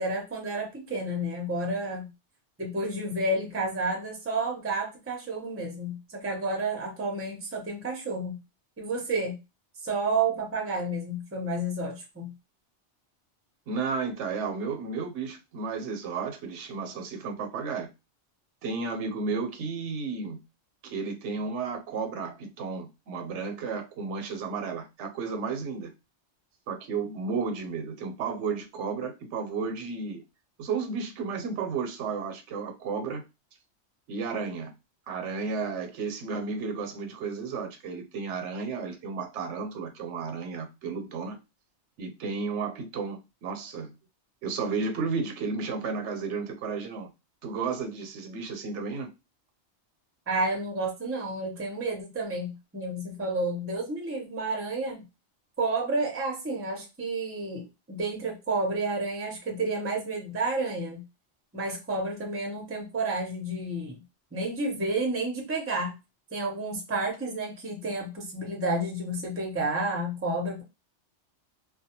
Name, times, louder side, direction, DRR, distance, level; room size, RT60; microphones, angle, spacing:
voice 1, 0.0-2.1 2.6-8.4 8.8-9.3 9.8-12.3 50.3-55.0 55.6-61.0 61.5-64.0 64.3-65.9 66.3-70.6, right 2 dB, 20° right, 0.4 m, -30 dB
voice 2, 13.7-17.9 18.6-20.4 20.8-25.9 26.7-30.2 30.6-33.2 34.1-34.7 35.1-41.4 42.0-43.9 44.4-47.1 47.4-49.1, right 5 dB, 85° right, 0.9 m, -33 dB
2.2 x 2.2 x 2.8 m
omnidirectional pair, 1.2 m